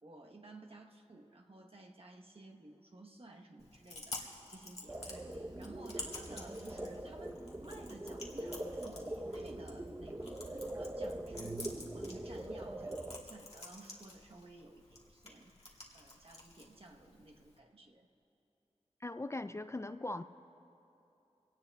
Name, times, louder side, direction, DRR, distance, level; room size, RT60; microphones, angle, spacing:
voice 1, 0.0-18.1, right 2 dB, 55° right, 1 dB, 1.1 m, -55 dB
Chewing mastication, 3.6-17.6, left 2 dB, 65° left, 2.0 m, -51 dB
sound 1, 4.9-13.2, right 1 dB, 25° right, 0.8 m, -42 dB
voice 2, 19.0-20.2, left 2 dB, 25° left, 10 dB, 0.3 m, -40 dB
23.5 x 18.0 x 2.3 m, 2.8 s
wide cardioid pair, 65°, 12 cm